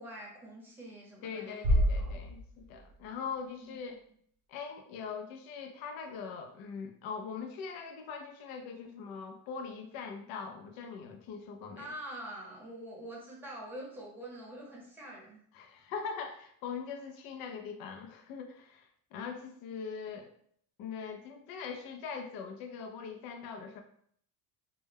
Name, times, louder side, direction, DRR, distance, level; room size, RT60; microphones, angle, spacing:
voice 1, 0.0-2.2 3.6-3.8 11.8-15.4, right 1 dB, 5° right, -5 dB, 0.7 m, -45 dB
voice 2, 1.2-4.0 4.5-11.9 15.5-20.3 20.8-23.8, left 6 dB, 75° left, 4 dB, 0.5 m, -42 dB
Bass drum, 1.6-3.3, equal, 80° right, 0.6 m, -29 dB
2.2 x 2.1 x 3.3 m, 0.63 s
cardioid pair, 155°, 37 cm